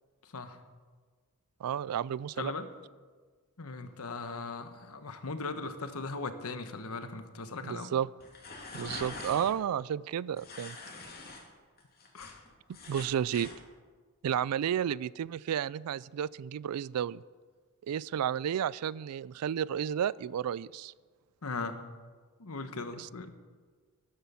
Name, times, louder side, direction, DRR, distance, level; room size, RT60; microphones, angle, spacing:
voice 1, 1.6-2.5 7.6-8.1 8.7-10.8 12.9-13.5 14.2-17.2 17.9-20.9 23.0-23.1, right 9 dB, 85° right, 22 dB, 0.3 m, -32 dB
voice 2, 3.6-7.9 12.1-12.4 21.4-21.8 22.4-23.3, left 3 dB, 70° left, 9 dB, 1.2 m, -38 dB
sound 1, 8.2-9.5 10.4-11.4 11.8-13.6, left 3 dB, 45° left, 2.6 m, -44 dB
13.5 x 11.5 x 5.6 m, 1.5 s
head